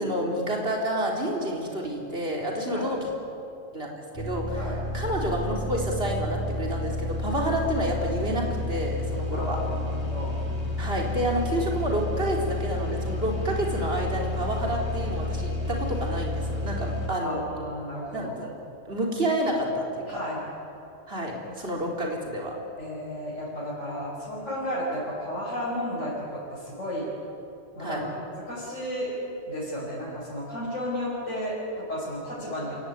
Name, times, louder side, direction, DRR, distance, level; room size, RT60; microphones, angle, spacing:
voice 1, 0.0-3.1 3.7-3.9 4.1-9.6 10.8-17.5 18.1-18.5 18.9-20.2 21.1-22.5 24.3-24.4 27.8-28.0, right 1 dB, 50° right, -1 dB, 4.2 m, -29 dB
sound 1, 4.1-17.1, left 1 dB, 20° left, 3.2 m, -30 dB
voice 2, 9.3-10.4 17.2-18.4 20.1-20.4 22.8-27.1 27.8-28.1 28.5-29.1 29.5-32.9, equal, 80° left, -9 dB, 6.4 m, -33 dB
27.0 x 17.0 x 9.7 m, 2.8 s
omnidirectional pair, 1.3 m